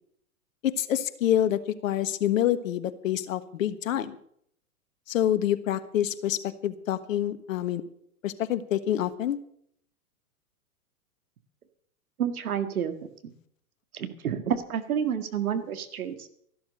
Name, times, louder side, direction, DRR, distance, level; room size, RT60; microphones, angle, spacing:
voice 1, 0.6-4.1 5.1-7.8 8.2-9.4, left 11 dB, 60° left, 12 dB, 1.4 m, -27 dB
voice 2, 12.2-13.0 13.9-16.3, right 8 dB, 75° right, 9 dB, 2.0 m, -29 dB
14.0 x 12.0 x 6.4 m, 0.68 s
hypercardioid pair, 115°, 44 cm